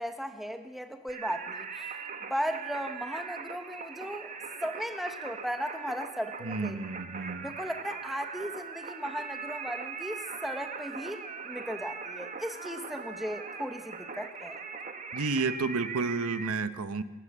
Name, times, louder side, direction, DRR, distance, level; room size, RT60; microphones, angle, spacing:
voice 1, 0.0-1.9 2.3-4.3 4.6-6.8 7.4-14.6, equal, ahead, 6 dB, 1.3 m, -36 dB
Singing, 1.1-16.5, right 5 dB, 35° right, 1.2 m, -40 dB
voice 2, 6.4-7.6 15.1-17.0, right 4 dB, 80° right, 12 dB, 1.0 m, -31 dB
28.0 x 13.5 x 7.4 m, 1.3 s
head